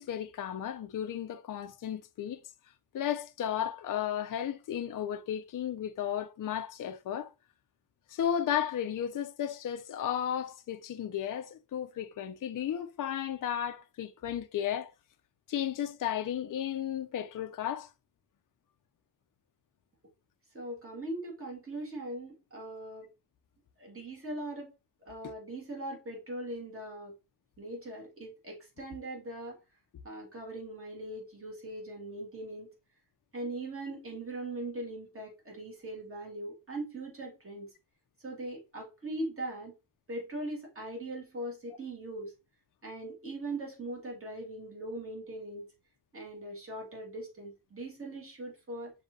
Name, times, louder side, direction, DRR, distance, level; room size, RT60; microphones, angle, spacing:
voice 1, 0.0-2.4 2.9-7.3 8.1-14.9 15.5-17.9, left 10 dB, 50° left, 0.4 m, -34 dB
voice 2, 20.5-23.1 23.8-24.7 25.1-27.1 27.6-29.6 30.0-32.7 33.3-37.7 38.2-39.7 40.1-42.3 42.8-45.7 46.1-48.9, right 1 dB, 30° right, 1.8 m, -40 dB
6.3 x 2.8 x 2.6 m
wide cardioid pair, 135°, 42 cm